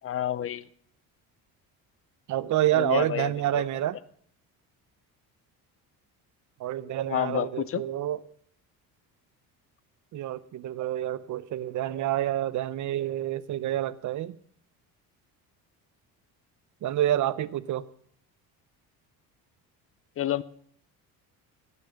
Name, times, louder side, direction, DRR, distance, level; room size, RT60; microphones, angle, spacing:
voice 1, 0.0-0.7 2.7-3.6 7.1-7.8 20.2-20.4, left 11 dB, 40° left, 0.5 m, -29 dB
voice 2, 2.3-4.0 6.6-8.2 10.1-14.4 16.8-17.9, right 13 dB, 55° right, 0.6 m, -28 dB
16.5 x 6.9 x 6.9 m
cardioid pair, 120°, 37 cm